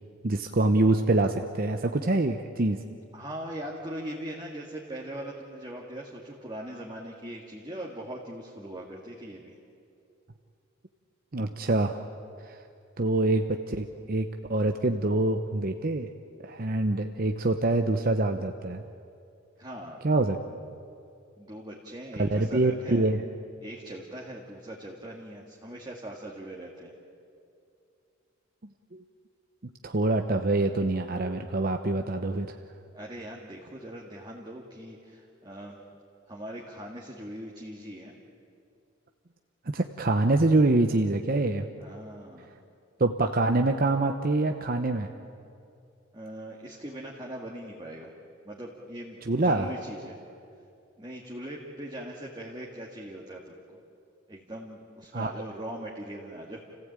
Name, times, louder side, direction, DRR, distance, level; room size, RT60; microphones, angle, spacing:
voice 1, 0.2-2.8 11.3-12.0 12.4-12.6 13.0-16.1 16.4-18.8 20.0-20.4 22.2-23.2 28.9-29.0 29.8-32.5 39.7-41.7 43.0-45.1 49.3-49.7 55.1-55.3, right 2 dB, 45° right, 6 dB, 0.8 m, -25 dB
voice 2, 3.1-9.5 19.6-20.0 21.4-23.1 23.6-26.9 32.9-35.8 36.3-38.1 41.8-42.5 46.1-48.1 48.4-50.2 51.0-53.8 54.3-56.6, right 1 dB, 20° right, -2 dB, 2.0 m, -40 dB
29.5 x 16.0 x 8.9 m, 2.5 s
head